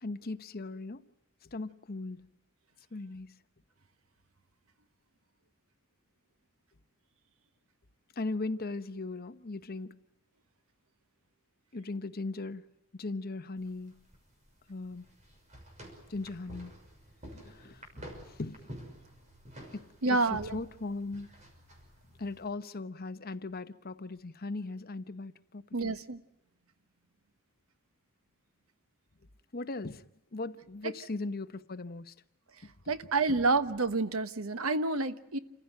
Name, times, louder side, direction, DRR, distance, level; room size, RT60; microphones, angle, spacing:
voice 1, 0.0-1.0 1.4-2.3 2.9-3.4 8.2-10.0 11.7-12.7 12.9-14.0 14.7-15.1 16.1-16.7 17.3-17.8 18.3-18.6 19.7-21.3 22.2-26.0 29.5-30.1 30.3-32.1 32.6-32.7 33.3-33.4, left 3 dB, 45° left, 1.0 m, -38 dB
sound 1, 13.6-22.4, equal, 35° right, 6.1 m, -50 dB
voice 2, 20.0-20.6 25.7-26.2 32.9-35.4, right 3 dB, 75° right, 1.3 m, -29 dB
29.0 x 15.5 x 9.2 m
head